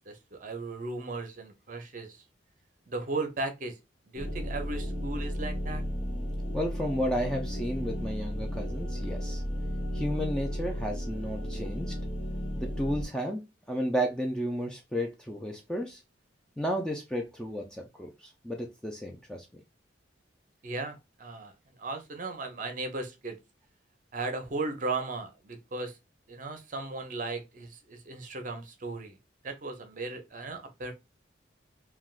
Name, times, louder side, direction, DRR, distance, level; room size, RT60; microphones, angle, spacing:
voice 1, 0.1-2.2 2.9-3.7 4.1-5.8 20.6-21.5 21.8-23.4 24.1-26.0 26.3-29.2 29.4-30.9, right 3 dB, 45° right, 0.6 m, -36 dB
sound 1, 4.2-13.0, equal, 30° left, 0.8 m, -34 dB
voice 2, 6.5-9.4 9.9-12.0 12.6-16.0 16.6-19.6, equal, 5° left, 0.3 m, -33 dB
3.3 x 2.3 x 2.3 m
head